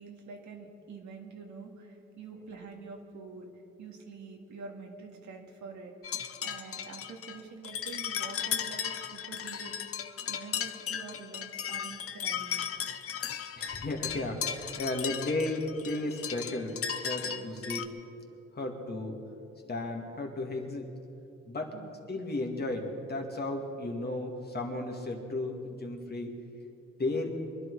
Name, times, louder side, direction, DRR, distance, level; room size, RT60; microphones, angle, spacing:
voice 1, 0.0-3.5 3.8-5.9 6.4-9.8 10.3-12.6 17.2-17.5 21.7-21.9, right 4 dB, 70° right, 2 dB, 2.1 m, -46 dB
sound 1, 6.0-17.9, left 8 dB, 50° left, 0.8 m, -36 dB
voice 2, 13.6-17.8 18.5-19.2 19.7-20.9 21.5-21.7 22.1-26.4 27.0-27.3, left 2 dB, 30° left, 2 dB, 2.3 m, -34 dB
23.5 x 11.0 x 4.9 m, 2.8 s
cardioid pair, 90°, 30 cm